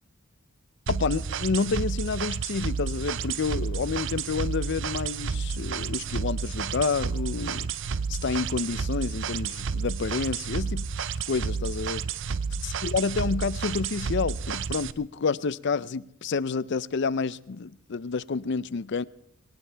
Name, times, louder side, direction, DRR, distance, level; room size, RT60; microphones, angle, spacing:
voice 1, 0.9-7.7 8.1-10.9 11.3-12.0 12.6-19.0, left 4 dB, 55° left, 0.5 m, -29 dB
sound 1, 0.9-14.9, right 5 dB, 60° right, 0.5 m, -31 dB
Bowed string instrument, 3.3-7.6, equal, 30° right, 3.6 m, -57 dB
22.0 x 18.5 x 3.4 m
head